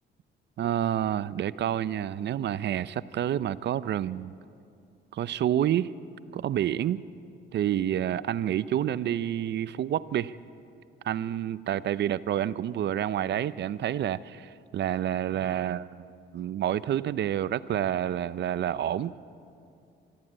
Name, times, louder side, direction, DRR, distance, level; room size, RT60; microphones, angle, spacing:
voice 1, 0.6-4.3 5.1-5.9 6.3-7.0 7.5-10.3 11.0-16.1 16.3-19.2, right 11 dB, 60° right, 16 dB, 0.6 m, -28 dB
24.0 x 13.0 x 8.7 m, 2.5 s
cardioid pair, 90°, 20 cm